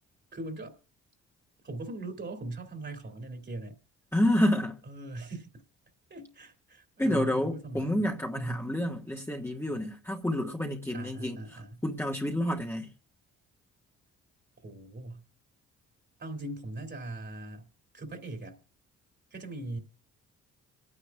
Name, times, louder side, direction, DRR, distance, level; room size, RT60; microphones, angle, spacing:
voice 1, 0.3-0.8 1.6-3.8 4.9-5.5 6.1-8.0 8.4-8.7 10.9-11.8 14.6-15.2 16.2-17.7 17.9-18.6 19.3-19.8, right 2 dB, 35° right, 2.4 m, -40 dB
voice 2, 4.1-4.8 7.0-12.9, left 1 dB, 10° left, 1.5 m, -29 dB
26.5 x 9.8 x 2.3 m
cardioid pair, 90°, 30 cm